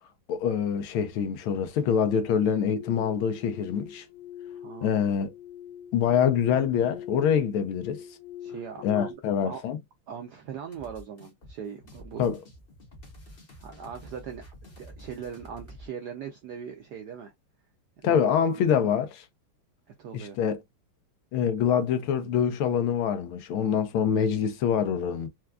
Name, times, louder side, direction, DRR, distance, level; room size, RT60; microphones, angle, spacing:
voice 1, 0.3-4.0 4.8-5.3 5.9-8.0 8.8-9.8 12.2-12.4 18.0-19.2 20.1-20.6 21.3-25.3, left 8 dB, 80° left, 1.5 m, -25 dB
sound 1, 2.8-9.1, left 9 dB, 55° left, 1.3 m, -44 dB
voice 2, 4.5-5.0 6.0-6.1 8.4-9.1 9.4-9.6 10.1-12.3 13.6-14.4 14.8-17.3 18.0-18.6 19.9-20.4, right 7 dB, 80° right, 0.9 m, -40 dB
sound 2, 10.7-15.9, equal, 35° left, 1.1 m, -48 dB
4.6 x 2.3 x 2.3 m
omnidirectional pair, 2.4 m